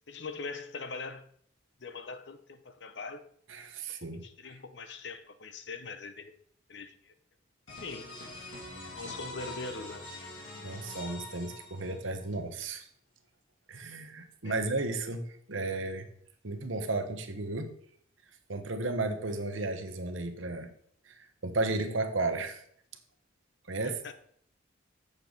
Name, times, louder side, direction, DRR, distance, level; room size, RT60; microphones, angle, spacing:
voice 1, 0.1-1.3 1.8-3.2 4.2-6.3 6.7-7.1 7.8-8.1 8.9-10.1 14.4-14.6 23.8-24.1, left 4 dB, 60° left, 0.7 m, -42 dB
voice 2, 3.5-4.5 10.6-12.9 13.7-16.1 16.4-17.7 18.5-20.7 21.0-22.6 23.7-24.0, right 2 dB, 80° right, 1.1 m, -34 dB
sound 1, 7.7-12.3, left 2 dB, 85° left, 2.7 m, -44 dB
7.6 x 6.8 x 3.9 m
head